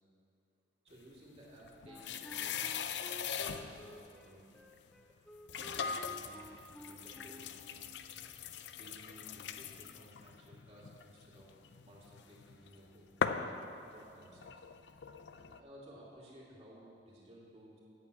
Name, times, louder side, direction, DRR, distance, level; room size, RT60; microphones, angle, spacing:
voice 1, 0.8-3.0 3.4-4.6 5.6-6.5 6.8-8.0 8.7-11.5 11.8-13.1 13.9-14.5 15.3-17.8, equal, 35° right, -5 dB, 2.6 m, -57 dB
sound 1, 1.4-3.9 4.7-4.8 5.5-12.7 13.2-15.6, left 6 dB, 70° left, 0.5 m, -41 dB
Wind instrument woodwind instrument, 1.8-7.7, right 1 dB, ahead, 0.6 m, -53 dB
8.4 x 6.8 x 8.4 m, 2.6 s
head